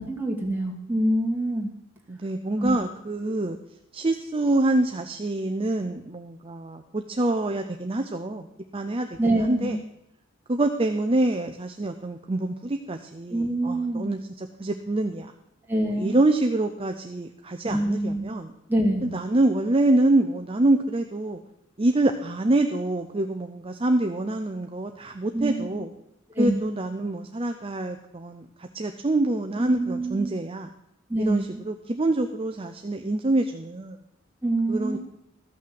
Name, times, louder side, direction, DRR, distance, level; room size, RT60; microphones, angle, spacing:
voice 1, 0.0-1.7 2.6-2.8 9.2-9.8 13.3-14.1 15.7-16.2 17.6-18.3 18.7-19.1 25.3-25.8 26.3-26.7 29.6-30.3 31.1-31.6 34.4-35.0, right 1 dB, 10° right, -1 dB, 2.1 m, -26 dB
voice 2, 2.1-3.6 3.9-8.5 8.7-9.8 10.5-15.3 16.0-18.5 19.0-21.4 21.8-25.9 26.4-30.7 31.2-34.0 34.7-35.0, right 2 dB, 25° right, 6 dB, 0.6 m, -26 dB
14.0 x 6.1 x 7.6 m, 0.83 s
head